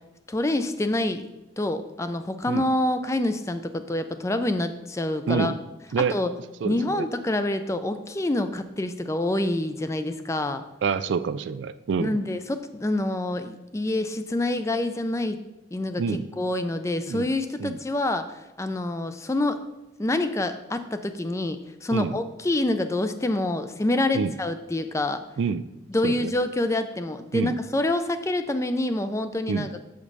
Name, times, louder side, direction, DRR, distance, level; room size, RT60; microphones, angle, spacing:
voice 1, 0.3-1.3 1.6-5.5 6.1-6.3 6.6-10.6 12.0-15.4 15.7-19.6 20.0-25.2 25.9-29.8, left 1 dB, 15° left, 9 dB, 0.3 m, -27 dB
voice 2, 5.3-5.6 5.9-6.2 6.6-7.1 10.8-12.2 16.0-16.3 17.1-17.3 17.6-17.8 21.9-22.2 24.1-24.3 25.4-25.7 26.0-26.3 27.3-27.6 29.5-29.7, right 5 dB, 65° right, 13 dB, 0.3 m, -27 dB
7.0 x 5.1 x 5.3 m, 1.0 s
head